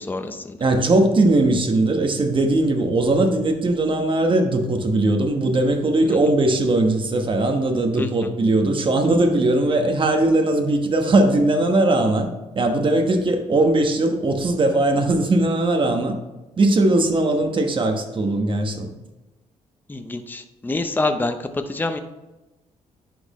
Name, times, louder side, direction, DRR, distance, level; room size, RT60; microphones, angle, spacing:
voice 1, 0.0-0.6 6.0-6.2 7.9-8.3 19.9-22.0, left 2 dB, 15° left, 7 dB, 0.6 m, -27 dB
voice 2, 0.6-12.3 12.5-16.1 16.6-18.9, right 2 dB, 40° right, 4 dB, 1.2 m, -19 dB
10.5 x 4.3 x 3.1 m, 1.1 s
cardioid pair, 90°, 13 cm